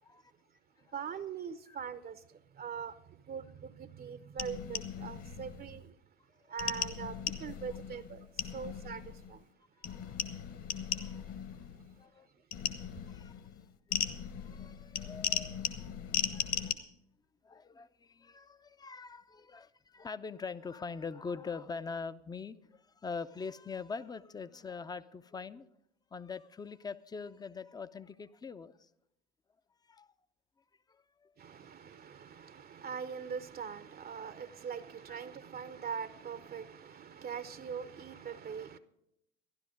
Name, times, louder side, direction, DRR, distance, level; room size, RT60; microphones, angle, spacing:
voice 1, 0.9-6.0 6.5-9.4 10.1-10.2 10.9-11.0 31.4-38.8, right 7 dB, 30° right, 0.6 m, -42 dB
sound 1, 4.4-5.8 6.6-9.4 9.8-12.0 12.5-16.7, left 8 dB, 45° left, 1.3 m, -38 dB
voice 2, 9.8-10.1 10.7-11.2 11.5-11.6 12.0-12.3 13.1-13.5 14.1-16.9 17.4-25.7 26.1-28.9 29.9-30.1 30.9-31.3 35.1-35.2 38.3-38.4, left 5 dB, 10° left, 0.5 m, -44 dB
13.0 x 11.5 x 5.1 m
hypercardioid pair, 70°, 33 cm